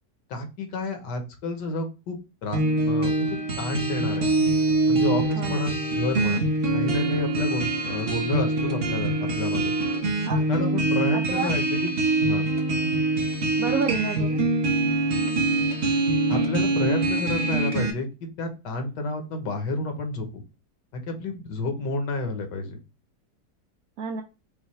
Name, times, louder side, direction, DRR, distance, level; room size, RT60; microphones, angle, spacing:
voice 1, 0.3-4.3 4.9-9.7 10.5-12.5 16.3-18.1 18.4-20.4 20.9-22.8, left 2 dB, 75° left, 5 dB, 1.5 m, -30 dB
sound 1, 2.5-17.9, right 2 dB, 45° right, 0.9 m, -24 dB
voice 2, 5.4-5.7 10.2-10.5 11.1-11.5 13.6-14.4 24.0-24.2, right 5 dB, 70° right, 4 dB, 0.8 m, -30 dB
5.5 x 2.2 x 3.1 m, 0.29 s
omnidirectional pair, 1.9 m